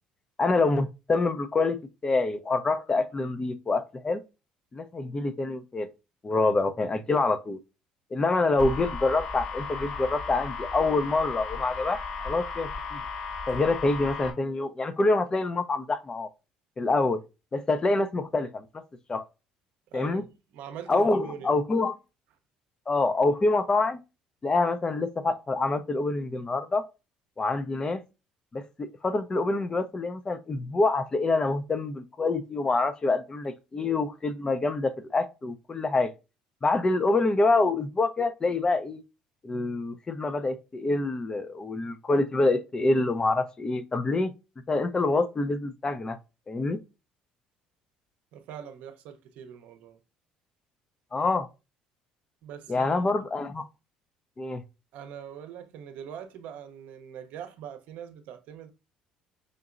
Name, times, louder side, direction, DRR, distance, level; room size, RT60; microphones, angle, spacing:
voice 1, 0.4-1.8 2.0-4.2 4.7-5.9 6.2-7.6 8.1-12.0 12.2-13.0 13.5-16.3 16.8-17.2 17.5-18.8 19.1-19.2 19.9-20.2 20.9-21.9 22.9-24.0 24.4-26.9 27.4-28.0 28.5-36.1 36.6-39.0 39.4-44.3 44.7-46.2 46.5-46.8 51.1-51.5 52.7-53.6 54.4-54.6, left 3 dB, 30° left, 0.6 m, -26 dB
sound 1, 8.6-14.3, left 4 dB, 50° left, 1.5 m, -35 dB
voice 2, 19.9-21.6 48.3-50.0 52.4-53.0 53.4-53.5 54.9-58.7, right 9 dB, 70° right, 0.7 m, -42 dB
5.1 x 2.8 x 2.4 m
hypercardioid pair, 65°, 3 cm